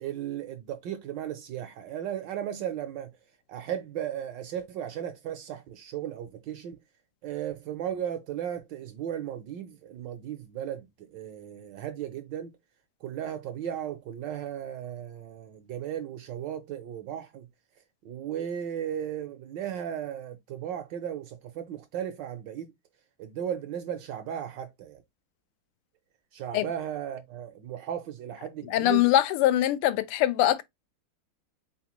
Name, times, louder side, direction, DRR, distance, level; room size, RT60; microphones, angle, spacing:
voice 1, 0.0-3.1 3.5-6.8 7.2-12.5 13.0-17.5 18.0-22.7 23.2-25.0 26.3-29.1, right 10 dB, 70° right, 1.1 m, -35 dB
voice 2, 28.7-30.6, left 13 dB, 85° left, 1.5 m, -23 dB
4.2 x 3.9 x 2.9 m
omnidirectional pair, 2.4 m